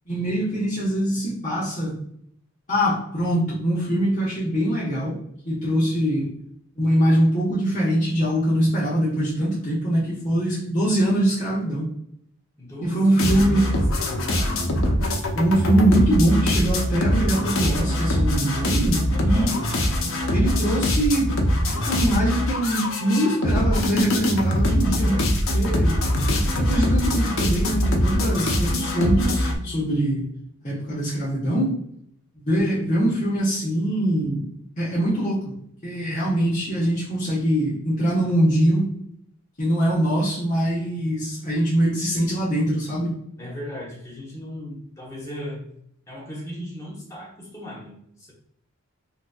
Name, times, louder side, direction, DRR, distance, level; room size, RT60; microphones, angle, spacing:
voice 1, 0.1-2.0 2.7-5.2 5.4-6.3 6.7-11.9 12.9-13.7 15.4-19.5 20.3-21.3 21.9-26.0 26.5-30.3 30.6-31.7 32.4-34.4 34.8-35.5 35.8-38.9 39.6-43.1, right 1 dB, 35° left, -9 dB, 1.1 m, -23 dB
voice 2, 12.6-14.7 19.1-19.6 43.4-45.6 46.1-48.3, left 1 dB, 15° left, -4 dB, 0.9 m, -36 dB
sound 1, 13.2-29.6, equal, 70° left, 0.6 m, -23 dB
3.9 x 2.6 x 2.3 m, 0.70 s
head